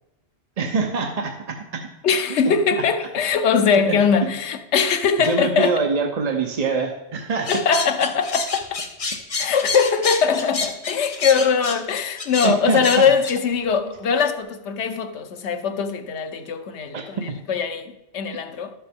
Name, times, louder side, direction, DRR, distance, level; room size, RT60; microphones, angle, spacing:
voice 1, 0.6-1.9 2.4-2.5 3.9-4.0 5.2-7.5 12.4-12.8 16.9-17.1, right 4 dB, 45° right, 0.7 m, -24 dB
voice 2, 2.0-5.8 7.5-8.8 9.4-18.7, left 6 dB, 85° left, 1.0 m, -21 dB
sound 1, 7.4-13.3, left 4 dB, 35° left, 0.8 m, -28 dB
11.5 x 7.1 x 3.5 m
omnidirectional pair, 1.1 m